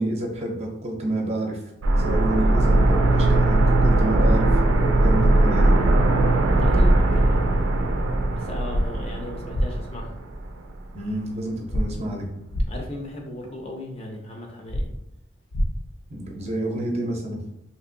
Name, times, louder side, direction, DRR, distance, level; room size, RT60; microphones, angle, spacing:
voice 1, 0.0-1.7 2.0-4.5 4.9-5.8 10.9-12.3 16.1-17.4, right 1 dB, 35° right, 1 dB, 0.5 m, -29 dB
sound 1, 1.8-10.5 10.8-10.9, right 2 dB, 85° right, 0.4 m, -19 dB
voice 2, 6.6-7.7 8.3-10.1 12.7-14.9, left 1 dB, 30° left, 1 dB, 0.5 m, -36 dB
sound 2, 8.7-8.8 9.5-9.7 11.7-11.8 12.5-12.7 14.7-14.8 15.5-15.7, equal, 80° left, 0.5 m, -23 dB
2.9 x 2.8 x 2.6 m, 0.80 s
head